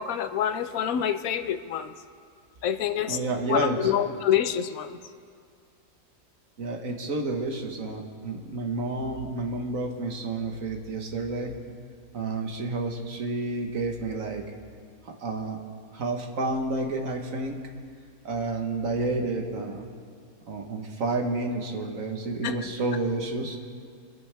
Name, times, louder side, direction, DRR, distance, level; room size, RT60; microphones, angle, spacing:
voice 1, 0.0-1.9 2.6-3.2 3.5-5.0 22.4-22.7, left 9 dB, 70° left, 10 dB, 1.0 m, -27 dB
voice 2, 3.1-3.9 6.6-11.5 12.1-14.4 15.0-15.6 15.9-17.6 18.2-19.9 20.5-23.6, right 2 dB, 65° right, 3 dB, 1.6 m, -30 dB
24.5 x 11.0 x 3.4 m, 2.2 s
omnidirectional pair, 1.6 m